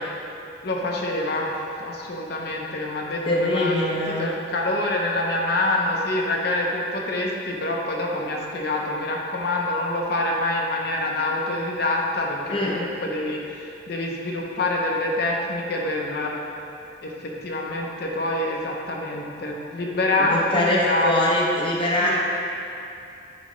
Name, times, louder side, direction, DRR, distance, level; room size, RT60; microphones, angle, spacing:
voice 1, 0.6-1.5 1.8-16.3 17.0-21.1 22.0-22.2, left 2 dB, 60° left, -1 dB, 0.8 m, -26 dB
voice 2, 3.3-4.3 12.5-12.8 20.2-22.2, left 1 dB, 30° left, -4 dB, 0.7 m, -23 dB
9.2 x 4.8 x 3.2 m, 2.6 s
head